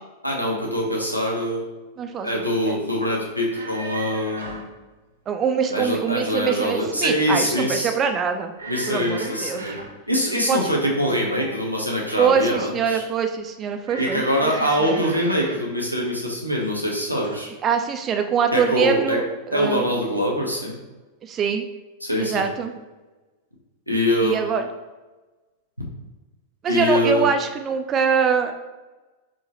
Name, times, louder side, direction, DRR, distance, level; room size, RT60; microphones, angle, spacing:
voice 1, 0.2-1.6 2.2-4.6 5.7-7.9 8.7-9.8 10.1-13.0 14.0-17.5 18.5-19.2 19.5-20.8 22.0-22.4 23.9-24.3 26.7-27.3, equal, 90° left, -2 dB, 0.8 m, -23 dB
voice 2, 2.0-2.8 5.3-8.5 8.9-9.8 10.5-10.7 12.2-14.5 14.8-15.0 17.6-19.8 21.2-21.7 22.2-22.7 24.2-24.6 26.6-28.6, right 6 dB, 30° right, 6 dB, 0.3 m, -23 dB
sound 1, 3.5-4.7 6.2-6.8 7.1-7.6 8.6-10.0 11.0-12.7 13.8-15.7 16.6-16.9 17.2-17.4, right 2 dB, 75° right, 0.7 m, -38 dB
4.6 x 2.9 x 3.0 m, 1.2 s
figure-of-eight pair, 90°, 0 cm